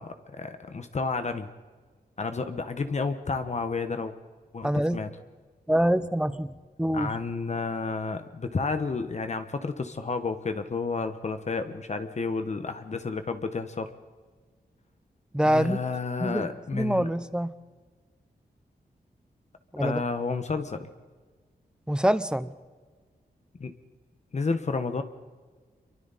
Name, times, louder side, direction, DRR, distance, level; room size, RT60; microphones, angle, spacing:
voice 1, 0.0-1.5 2.2-4.1 4.5-5.1 6.9-13.9 15.4-17.1 19.8-20.9 23.6-23.7 24.3-25.0, left 4 dB, 45° left, 8 dB, 1.2 m, -31 dB
voice 2, 4.6-5.0 5.7-6.5 6.8-7.1 15.3-15.8 16.2-16.5 16.7-17.5 19.7-20.0 21.9-22.5, right 1 dB, 5° right, 13 dB, 0.8 m, -25 dB
27.5 x 23.5 x 4.2 m, 1.4 s
wide cardioid pair, 120°, 17 cm